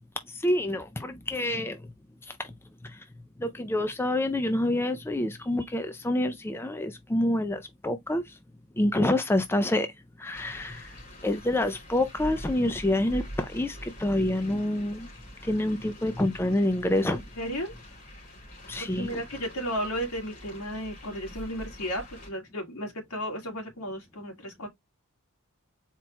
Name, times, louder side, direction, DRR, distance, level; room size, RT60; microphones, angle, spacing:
voice 1, 0.3-1.8 2.8-3.0 3.4-8.2 8.8-9.9 10.2-10.9 11.2-15.1 15.4-17.2 18.7-19.1, left 1 dB, 10° left, 0.4 m, -27 dB
sound 1, 10.3-22.3, equal, 35° left, 3.3 m, -44 dB
voice 2, 17.4-17.7 18.8-24.7, equal, 80° left, 2.1 m, -34 dB
4.4 x 4.2 x 2.3 m
head